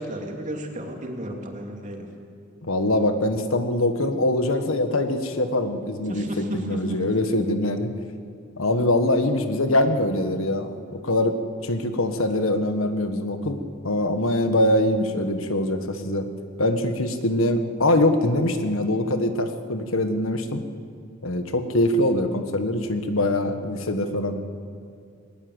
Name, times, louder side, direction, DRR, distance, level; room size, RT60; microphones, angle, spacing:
voice 1, 0.0-2.1 6.1-7.0 9.1-9.2, right 1 dB, 40° right, 1 dB, 3.0 m, -33 dB
voice 2, 2.6-7.9 8.6-10.8 11.0-11.4 11.6-16.2 16.6-20.6 21.2-24.4, left 1 dB, 80° left, 8 dB, 1.5 m, -23 dB
20.0 x 19.5 x 8.1 m, 2.5 s
head